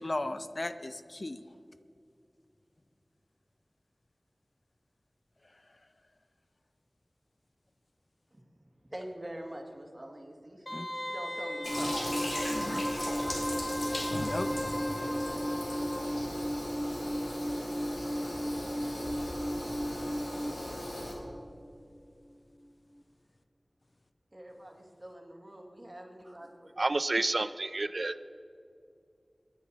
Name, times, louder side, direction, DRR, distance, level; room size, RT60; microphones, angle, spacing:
voice 1, 0.0-1.4 5.5-5.6 10.7-10.9 12.5-12.8 14.1-14.8, left 2 dB, 50° left, 12 dB, 0.6 m, -36 dB
voice 2, 8.9-13.0 13.4-13.5 13.9-14.0 14.9-16.7 24.3-26.7, right 1 dB, 30° right, 0 dB, 2.2 m, -46 dB
Wind instrument woodwind instrument, 10.7-16.2 16.5-16.6, left 1 dB, 25° left, 1.3 m, -38 dB
Toilet flush, 11.6-21.1, left 1 dB, 90° left, 2.4 m, -37 dB
Alarm, 11.6-20.5, equal, 5° right, 0.8 m, -36 dB
voice 3, 26.8-28.2, right 2 dB, 65° right, 13 dB, 0.4 m, -29 dB
22.5 x 10.0 x 4.2 m, 2.5 s
wide cardioid pair, 60°, 0 cm